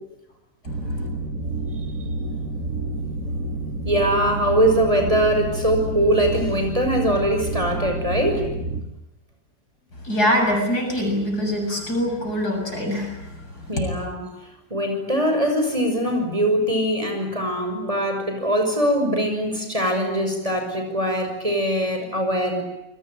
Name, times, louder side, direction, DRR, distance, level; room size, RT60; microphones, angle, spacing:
sound 1, 0.7-8.8, right 2 dB, 60° right, 3.5 m, -29 dB
voice 1, 3.8-8.4 13.7-14.2 14.7-22.6, equal, 20° right, 4 dB, 6.3 m, -22 dB
voice 2, 10.0-13.2 13.8-13.9, equal, 65° left, 3 dB, 7.9 m, -23 dB
29.0 x 22.0 x 9.1 m, 0.90 s
omnidirectional pair, 1.8 m